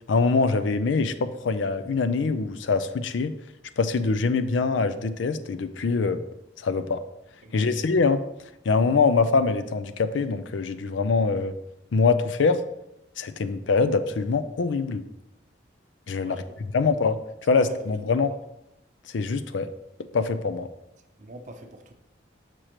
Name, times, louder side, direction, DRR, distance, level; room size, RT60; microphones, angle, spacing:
voice 1, 0.1-3.3 3.8-6.2 6.6-7.0 7.5-8.2 8.7-11.5 11.9-12.6 13.2-15.0 16.1-16.4 16.7-17.2 17.5-18.3 19.1-19.7 20.1-20.7, left 4 dB, 85° left, 0.4 m, -24 dB
voice 2, 7.4-7.8 16.2-16.6 17.6-18.4 21.2-21.9, right 1 dB, 40° right, 0.6 m, -43 dB
6.4 x 6.1 x 2.9 m
head